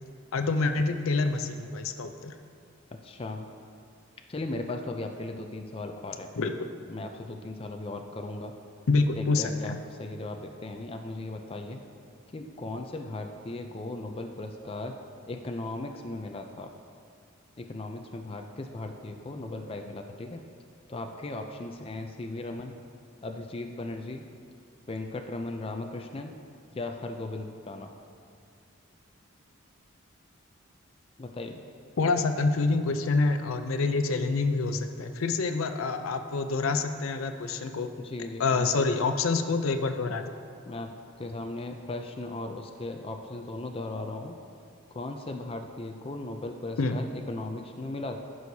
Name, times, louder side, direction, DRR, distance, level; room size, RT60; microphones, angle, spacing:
voice 1, 0.3-2.4 6.4-6.5 8.9-9.8 32.0-37.9 38.4-40.3 46.8-47.0, left 3 dB, 80° left, 7 dB, 0.5 m, -27 dB
voice 2, 2.9-3.5 4.3-6.3 6.9-8.5 9.1-11.8 12.3-15.0 15.3-16.7 17.6-20.4 20.9-22.8 23.2-24.2 24.9-26.4 26.7-27.9 31.2-31.6 38.0-38.8 40.7-44.3 44.9-48.2, left 2 dB, 25° left, 4 dB, 0.4 m, -37 dB
14.0 x 6.3 x 2.8 m, 2.4 s
head